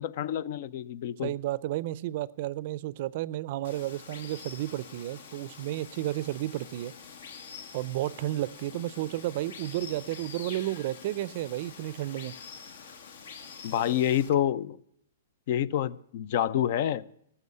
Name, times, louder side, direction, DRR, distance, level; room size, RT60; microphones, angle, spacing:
voice 1, 0.0-1.3 13.6-14.8 15.5-17.0, left 10 dB, 50° left, 0.5 m, -28 dB
voice 2, 1.2-6.9 7.7-12.3, right 15 dB, 50° right, 0.5 m, -32 dB
Water, 3.6-14.3, left 6 dB, 70° left, 1.7 m, -46 dB
14.0 x 7.1 x 9.5 m
hypercardioid pair, 150°, 0 cm